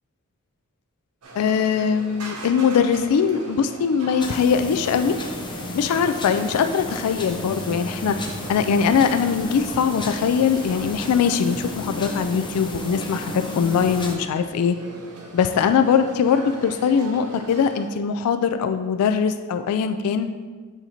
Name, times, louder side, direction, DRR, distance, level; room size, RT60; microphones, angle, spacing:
sound 1, 1.2-17.9, right 2 dB, 85° right, 1.0 m, -41 dB
voice 1, 1.4-5.2 5.7-8.2 8.5-14.8 15.3-20.3, left 6 dB, 90° left, 9 dB, 0.3 m, -21 dB
sound 2, 4.2-14.2, left 1 dB, 20° left, 0.5 m, -33 dB
8.0 x 2.8 x 4.4 m, 1.5 s
head